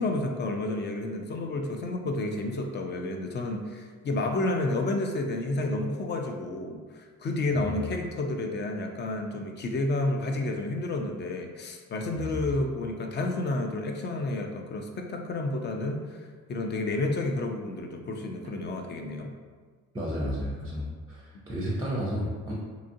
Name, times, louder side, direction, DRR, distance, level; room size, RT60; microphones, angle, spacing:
voice 1, 0.0-19.3, left 2 dB, 35° left, 3 dB, 0.4 m, -30 dB
voice 2, 7.5-7.8 12.1-12.5 19.9-22.5, equal, 15° right, -5 dB, 0.5 m, -32 dB
2.8 x 2.4 x 2.6 m, 1.6 s
cardioid pair, 90°, 30 cm